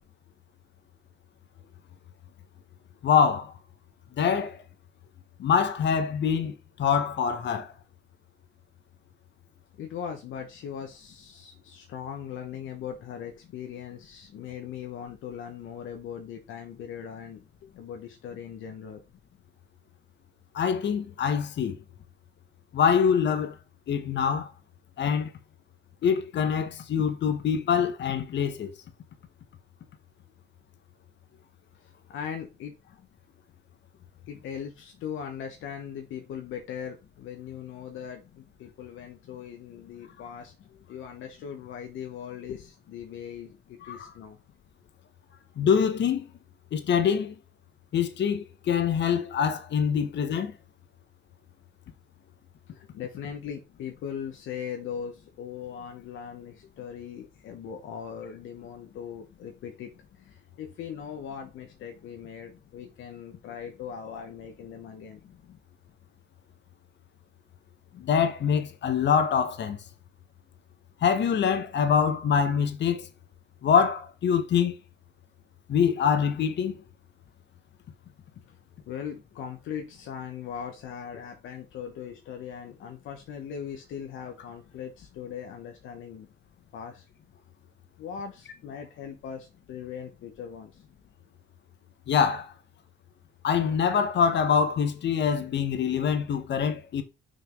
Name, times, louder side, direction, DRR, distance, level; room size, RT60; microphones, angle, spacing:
voice 1, 3.0-3.5 4.2-4.6 5.4-7.7 20.5-21.8 22.7-23.5 23.9-24.5 25.0-25.3 26.0-28.7 43.9-44.0 45.6-46.2 46.7-47.3 47.9-50.5 67.9-69.8 71.0-73.1 73.6-74.8 75.7-76.8 92.1-92.5 93.4-97.0, left 7 dB, 65° left, 1.3 m, -24 dB
voice 2, 9.8-19.0 32.1-32.7 34.3-44.4 52.7-59.9 60.2-65.2 78.9-86.3 86.7-87.1 88.0-90.8, left 8 dB, 85° left, 1.3 m, -39 dB
6.5 x 4.3 x 5.3 m
cardioid pair, 90°, 20 cm